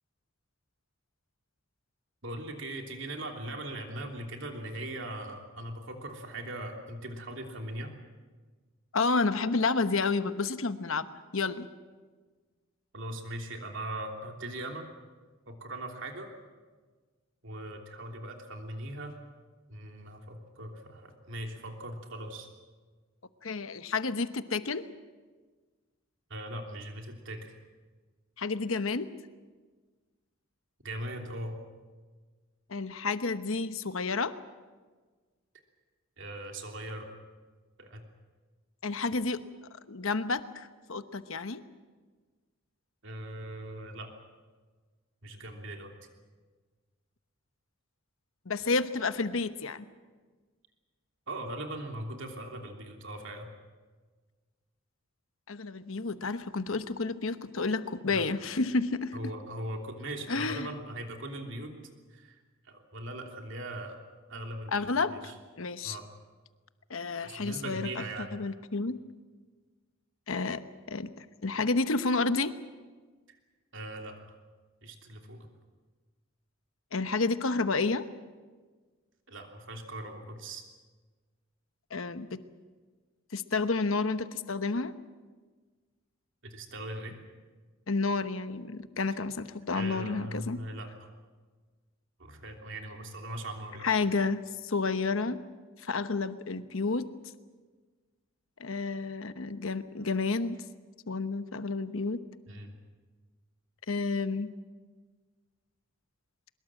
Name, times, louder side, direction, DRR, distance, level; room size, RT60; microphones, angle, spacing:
voice 1, 2.2-7.9 12.9-14.9 15.5-16.3 17.4-19.1 19.7-22.5 26.3-27.5 30.8-31.6 36.2-37.1 37.8-38.0 43.0-44.1 45.2-45.9 51.3-53.5 58.1-58.2 59.1-61.7 62.1-62.4 62.6-64.0 64.3-65.3 65.8-66.0 67.2-68.4 73.3-73.4 73.7-74.4 74.8-75.5 79.3-80.6 86.4-87.2 89.7-91.1 92.2-93.9 102.5-102.7, right 1 dB, 60° right, 3 dB, 3.1 m, -40 dB
voice 2, 8.9-11.1 11.3-11.7 23.4-24.8 28.4-29.1 32.7-34.3 38.8-39.4 39.9-41.6 48.5-49.9 55.5-59.2 60.3-60.7 64.7-65.1 65.6-66.0 66.9-68.0 68.3-69.0 70.3-70.6 70.9-72.5 76.9-78.0 81.9-82.4 83.3-84.9 87.9-90.6 93.8-95.4 95.8-97.1 98.6-100.6 101.1-102.2 103.9-104.5, left 3 dB, 70° left, 11 dB, 1.0 m, -30 dB
23.0 x 21.5 x 7.5 m, 1.4 s
head